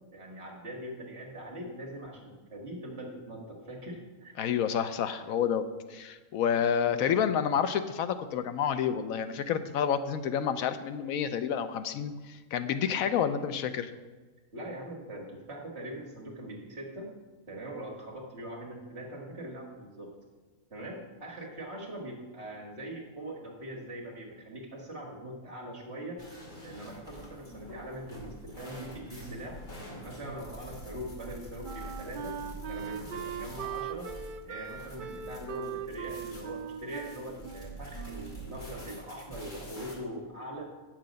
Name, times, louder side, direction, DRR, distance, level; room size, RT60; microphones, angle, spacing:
voice 1, 0.1-4.4 14.5-17.1 17.5-20.1 20.7-26.2 26.6-29.6 30.0-32.4 32.7-34.1 34.5-40.7, right 1 dB, 50° right, -1 dB, 1.9 m, -42 dB
voice 2, 4.4-13.9, left 8 dB, 80° left, 11 dB, 1.0 m, -29 dB
sound 1, 26.2-39.9, equal, 35° left, 2.3 m, -46 dB
Wind instrument woodwind instrument, 31.2-38.5, right 8 dB, 85° right, 0.4 m, -40 dB
8.7 x 7.6 x 5.2 m, 1.3 s
omnidirectional pair, 1.5 m